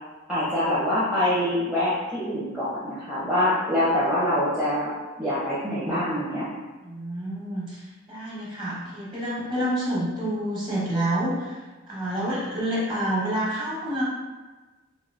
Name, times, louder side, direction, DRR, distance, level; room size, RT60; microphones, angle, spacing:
voice 1, 0.3-4.9 5.2-6.5, left 1 dB, 5° right, -12 dB, 0.8 m, -25 dB
voice 2, 6.8-7.8 8.1-11.6 11.9-14.0, right 1 dB, 25° right, -7 dB, 1.3 m, -28 dB
4.6 x 2.7 x 2.7 m, 1.2 s
head